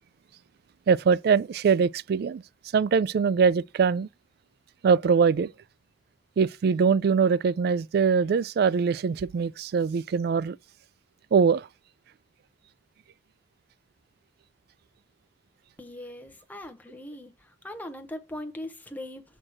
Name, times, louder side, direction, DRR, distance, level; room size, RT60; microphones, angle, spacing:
voice 1, 0.9-2.4 2.7-4.1 4.8-5.5 6.4-10.6 11.3-11.7, right 6 dB, 60° right, 0.3 m, -22 dB
voice 2, 15.8-19.2, left 1 dB, 10° left, 0.9 m, -40 dB
5.9 x 4.5 x 6.4 m
head